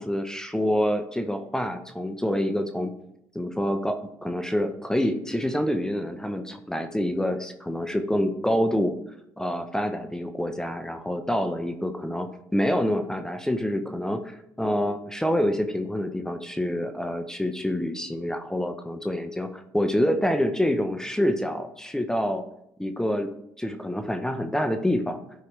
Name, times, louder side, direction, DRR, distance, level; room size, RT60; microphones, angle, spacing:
voice 1, 0.0-2.9 3.3-9.0 9.4-22.4 22.8-23.3 23.6-25.2, equal, 5° left, 7 dB, 0.8 m, -27 dB
11.5 x 4.7 x 3.3 m, 0.77 s
hypercardioid pair, 60°, 10 cm